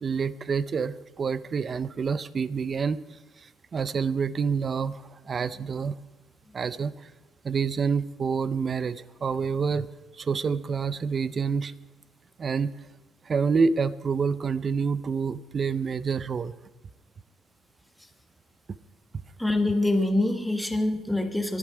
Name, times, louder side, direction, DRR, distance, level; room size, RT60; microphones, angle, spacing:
voice 1, 0.0-3.0 3.4-6.0 6.5-7.1 7.4-9.9 10.1-11.7 12.4-12.7 13.3-16.5, right 5 dB, 30° right, 16 dB, 0.5 m, -27 dB
voice 2, 19.4-21.6, left 2 dB, 5° left, 5 dB, 1.3 m, -25 dB
23.0 x 10.5 x 4.8 m, 1.2 s
cardioid pair, 150°, 0 cm